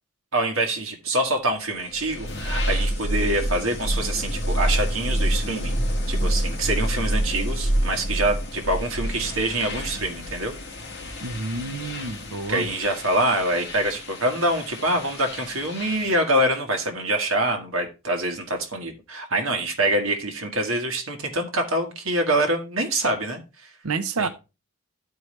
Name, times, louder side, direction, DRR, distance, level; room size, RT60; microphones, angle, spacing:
voice 1, 0.3-5.7 6.1-10.5 12.5-23.7 24.2-24.3, right 1 dB, 65° right, 1.6 m, -25 dB
sound 1, 1.7-16.3, equal, 50° left, 1.8 m, -28 dB
voice 2, 11.2-12.6 23.8-24.3, right 4 dB, 90° right, 0.8 m, -29 dB
12.0 x 4.7 x 3.2 m
head